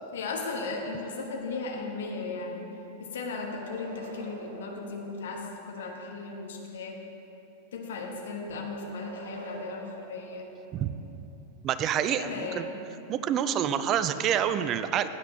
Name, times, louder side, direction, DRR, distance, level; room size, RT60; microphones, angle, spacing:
voice 1, 0.1-2.7 3.0-7.0 7.7-10.5 12.2-12.8, left 3 dB, 60° left, 1 dB, 1.3 m, -36 dB
sound 1, 3.1-5.8 8.4-11.1, right 2 dB, 70° right, 1.1 m, -47 dB
voice 2, 11.6-12.7 13.1-15.1, right 9 dB, 35° right, 12 dB, 0.4 m, -27 dB
15.5 x 9.1 x 2.8 m, 2.9 s
figure-of-eight pair, 90°, 0 cm